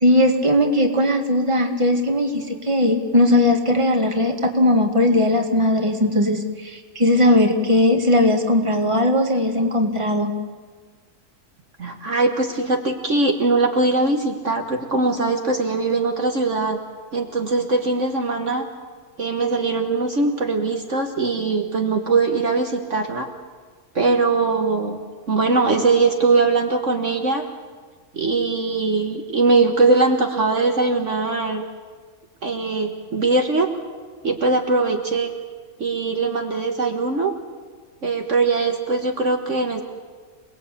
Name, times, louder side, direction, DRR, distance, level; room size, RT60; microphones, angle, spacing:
voice 1, 0.0-10.3, left 1 dB, 20° right, 3 dB, 2.1 m, -18 dB
voice 2, 11.8-16.8 17.1-18.6 19.2-23.3 24.0-25.0 25.3-27.5 28.1-31.6 32.4-33.7 34.2-35.3 35.8-37.3 38.0-39.8, right 3 dB, 55° right, 3 dB, 1.8 m, -21 dB
27.5 x 20.0 x 8.5 m, 1.5 s
omnidirectional pair, 1.6 m